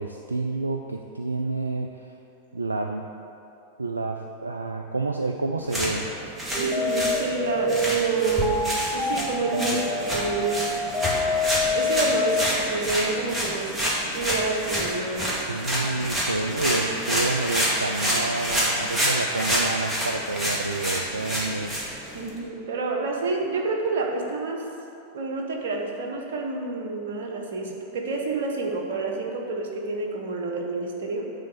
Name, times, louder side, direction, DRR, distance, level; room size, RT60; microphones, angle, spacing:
voice 1, 0.0-2.1 2.5-3.1 3.8-6.1 9.7-9.8 15.5-21.7, right 3 dB, 80° right, 4 dB, 0.3 m, -29 dB
sound 1, 5.6-22.4, equal, 10° right, 2.0 m, -28 dB
sound 2, 6.5-12.4, left 1 dB, 30° right, 1.2 m, -26 dB
voice 2, 6.6-8.6 8.9-10.8 11.7-13.9 14.1-15.4 16.7-17.0 22.1-24.6 25.1-31.3, right 3 dB, 60° right, 1 dB, 1.2 m, -29 dB
9.4 x 4.2 x 6.7 m, 2.7 s
figure-of-eight pair, 90°, 0 cm